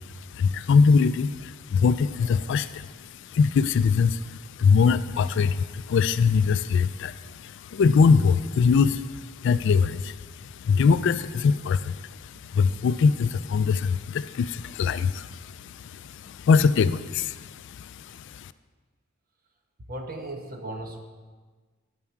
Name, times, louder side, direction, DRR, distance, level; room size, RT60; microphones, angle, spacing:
voice 1, 0.0-18.5, left 5 dB, 60° left, 14 dB, 0.3 m, -23 dB
voice 2, 2.2-2.5 19.9-21.0, right 1 dB, 45° right, 3 dB, 1.1 m, -37 dB
10.5 x 7.2 x 4.6 m, 1.4 s
head